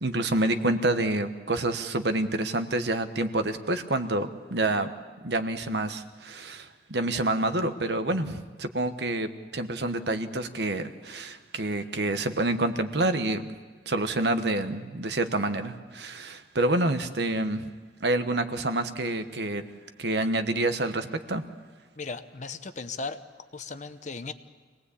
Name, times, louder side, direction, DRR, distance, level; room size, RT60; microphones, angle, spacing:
voice 1, 0.0-4.9 5.2-13.5 13.9-17.7 18.0-19.6 20.0-21.4, right 2 dB, 60° right, 9 dB, 1.2 m, -28 dB
voice 2, 22.0-23.2 23.5-24.3, left 4 dB, 40° left, 10 dB, 0.9 m, -36 dB
25.5 x 18.5 x 8.5 m, 1.4 s
head